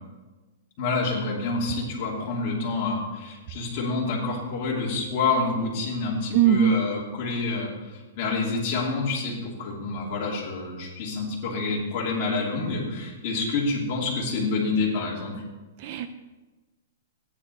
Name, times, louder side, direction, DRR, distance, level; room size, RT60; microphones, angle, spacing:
voice 1, 0.8-7.7 8.2-15.4, left 3 dB, 30° left, -4 dB, 3.1 m, -28 dB
voice 2, 6.3-6.7 15.8-16.1, right 9 dB, 35° right, 10 dB, 0.5 m, -20 dB
13.0 x 10.5 x 4.2 m, 1.2 s
hypercardioid pair, 175°, 0 cm